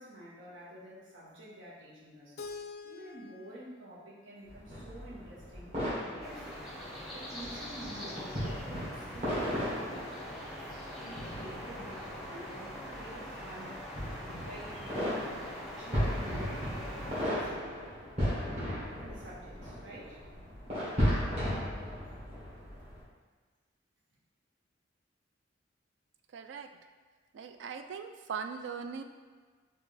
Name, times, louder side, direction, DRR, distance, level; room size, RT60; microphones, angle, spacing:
voice 1, 0.0-2.4 2.8-5.7 6.2-6.5 7.1-9.6 10.6-10.7 11.0-13.8 14.4-15.5 15.8-17.5 19.0-20.2, right 1 dB, 90° right, -7 dB, 1.2 m, -49 dB
Keyboard (musical), 2.4-5.3, left 4 dB, 55° left, 0.3 m, -48 dB
sound 1, 4.4-23.0, equal, 35° right, 1.5 m, -36 dB
sound 2, 6.2-17.2, equal, ahead, 0.9 m, -43 dB
voice 2, 26.3-26.7 27.3-29.0, right 6 dB, 70° right, 7 dB, 0.3 m, -40 dB
4.7 x 2.6 x 3.3 m, 1.5 s
head